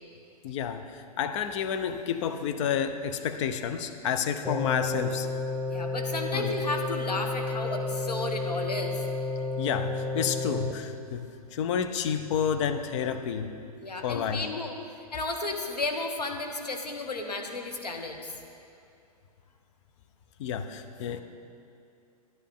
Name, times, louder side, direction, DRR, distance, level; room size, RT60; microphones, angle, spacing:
voice 1, 0.4-5.3 6.3-6.5 9.6-13.5 14.0-14.4 20.4-21.2, left 7 dB, 50° left, 8 dB, 0.7 m, -30 dB
sound 1, 4.4-10.7, left 3 dB, ahead, 0.3 m, -31 dB
voice 2, 5.7-9.0 13.8-14.7 15.1-18.3, left 2 dB, 90° left, 3 dB, 1.1 m, -33 dB
11.0 x 10.5 x 3.7 m, 2.5 s
figure-of-eight pair, 115°, 20 cm